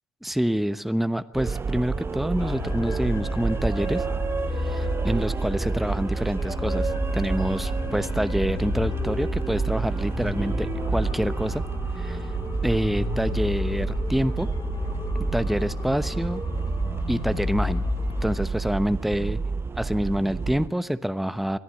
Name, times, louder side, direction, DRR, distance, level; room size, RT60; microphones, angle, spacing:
voice 1, 0.2-4.0 4.5-11.6 12.0-12.3 12.6-14.5 15.3-16.4 17.1-17.8 18.2-19.4 19.8-21.6, equal, ahead, 13 dB, 1.1 m, -27 dB
sound 1, 1.3-20.7, right 4 dB, 30° right, 0.8 m, -29 dB
sound 2, 2.4-18.4, left 7 dB, 50° left, 1.3 m, -34 dB
sound 3, 3.7-13.2, left 3 dB, 20° left, 2.3 m, -44 dB
22.5 x 14.0 x 8.5 m, 0.82 s
hypercardioid pair, 60°, 8 cm